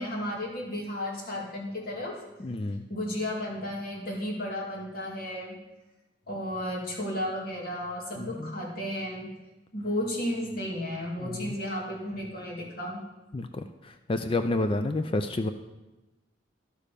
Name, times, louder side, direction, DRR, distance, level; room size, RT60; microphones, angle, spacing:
voice 1, 0.0-2.2 2.9-5.6 6.3-9.3 9.7-13.0, left 1 dB, 50° left, -3 dB, 2.4 m, -33 dB
voice 2, 2.4-2.9 8.2-8.5 11.2-11.6 13.3-15.5, left 2 dB, 30° left, 8 dB, 0.4 m, -30 dB
11.5 x 6.5 x 5.2 m, 1.1 s
head